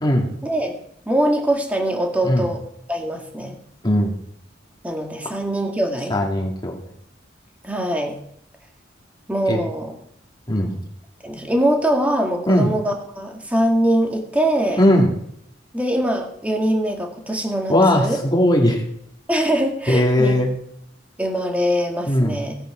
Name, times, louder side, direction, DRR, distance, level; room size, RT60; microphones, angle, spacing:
voice 1, 0.4-0.8 1.1-2.6 2.9-3.6 4.8-6.2 7.6-8.2 9.3-9.9 11.2-14.8 15.7-18.2 19.3-20.3 21.2-22.5, right 1 dB, 10° right, 2 dB, 2.2 m, -22 dB
voice 2, 3.8-4.2 6.1-6.8 9.5-9.6 10.5-10.8 12.5-12.7 14.8-15.1 17.7-18.8 19.9-20.5 22.1-22.4, left 1 dB, 25° left, 1 dB, 2.3 m, -18 dB
17.0 x 8.8 x 5.1 m, 0.70 s
head